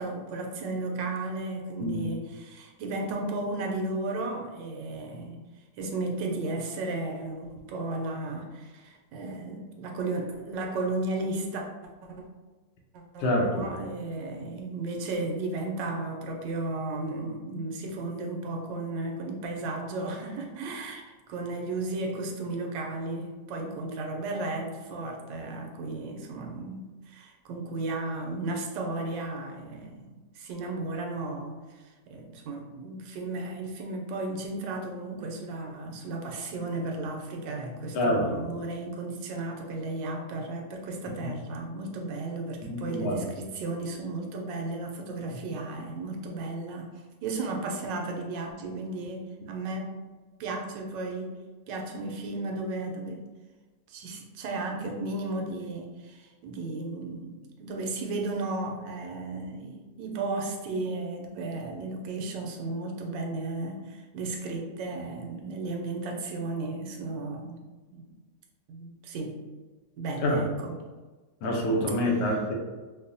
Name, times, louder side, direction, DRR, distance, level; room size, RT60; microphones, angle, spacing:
voice 1, 0.0-5.4 5.8-11.6 12.9-46.9 47.2-50.0 50.4-51.4 51.7-53.2 53.9-67.6 67.9-68.1 68.7-69.4 70.0-70.7, right 2 dB, 90° right, 2 dB, 1.3 m, -34 dB
voice 2, 13.2-13.7 37.9-38.4 42.6-43.3 70.2-70.4 71.4-72.5, left 1 dB, 80° left, -1 dB, 1.3 m, -26 dB
4.7 x 2.1 x 2.6 m, 1.3 s
omnidirectional pair, 1.9 m